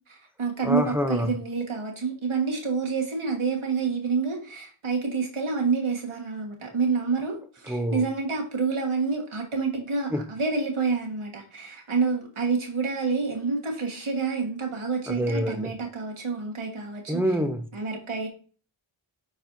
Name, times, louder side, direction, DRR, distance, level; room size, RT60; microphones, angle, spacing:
voice 1, 0.1-17.2 17.7-18.3, right 4 dB, 90° right, 1.6 m, -28 dB
voice 2, 0.6-1.3 7.7-8.0 10.1-10.2 15.1-15.7 17.1-17.7, equal, 5° right, 0.7 m, -26 dB
9.8 x 4.3 x 2.7 m
wide cardioid pair, 65°, 48 cm